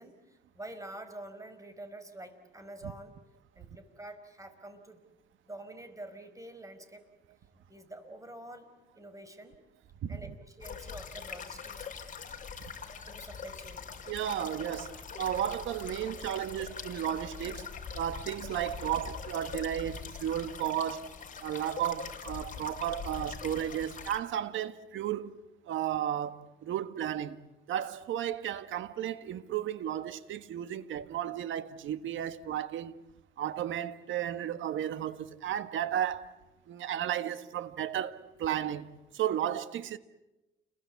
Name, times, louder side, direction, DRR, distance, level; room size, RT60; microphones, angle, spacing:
voice 1, 0.0-3.1 3.5-5.0 5.5-7.0 7.7-8.7 8.9-9.6 10.1-11.9 13.0-13.8, right 1 dB, 15° right, 4.9 m, -47 dB
sound 1, 10.6-24.2, left 6 dB, 40° left, 4.6 m, -43 dB
voice 2, 14.1-21.1 21.4-25.3 25.7-27.4 27.7-33.0 33.4-36.3 36.7-38.9 39.1-40.0, right 10 dB, 75° right, 1.5 m, -34 dB
30.0 x 22.5 x 8.4 m
cardioid pair, 90°, 20 cm